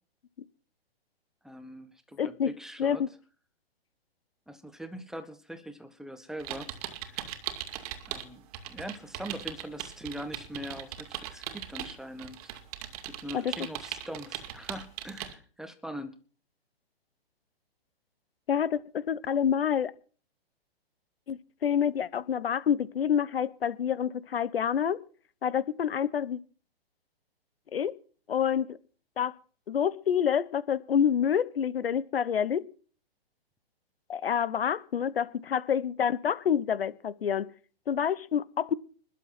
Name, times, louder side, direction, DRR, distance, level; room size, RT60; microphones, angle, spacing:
voice 1, 1.4-3.0 4.5-6.7 7.1-7.3 8.1-12.6 13.1-16.1, equal, ahead, 1.3 m, -42 dB
voice 2, 2.2-2.5 2.8-3.1 13.3-13.4 18.5-19.9 21.3-25.0 25.4-26.4 27.7-27.9 28.3-28.7 29.2-29.3 29.7-32.7 34.1-37.5 37.9-38.7, left 8 dB, 65° left, 1.1 m, -27 dB
sound 1, 6.4-8.3 8.5-15.3, right 12 dB, 35° right, 2.3 m, -39 dB
21.0 x 7.5 x 5.9 m
hypercardioid pair, 130°, 31 cm